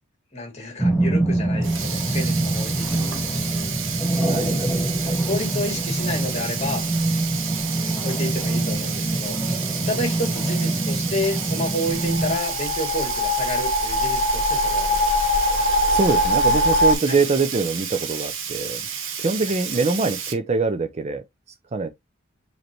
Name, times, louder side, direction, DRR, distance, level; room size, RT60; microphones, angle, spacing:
voice 1, 0.3-3.8 5.1-6.8 8.0-9.4 9.9-15.1 17.0-17.2, left 1 dB, 35° left, 1.9 m, -30 dB
sound 1, 0.8-12.4, right 1 dB, 5° left, 1.3 m, -25 dB
Sink (filling or washing), 1.6-20.3, right 7 dB, 75° right, 1.0 m, -31 dB
voice 2, 4.2-4.7 15.9-18.8 19.2-21.2 21.7-21.9, right 4 dB, 35° right, 0.5 m, -24 dB
sound 2, 11.9-16.9, left 1 dB, 50° left, 1.3 m, -22 dB
5.1 x 3.2 x 3.0 m
head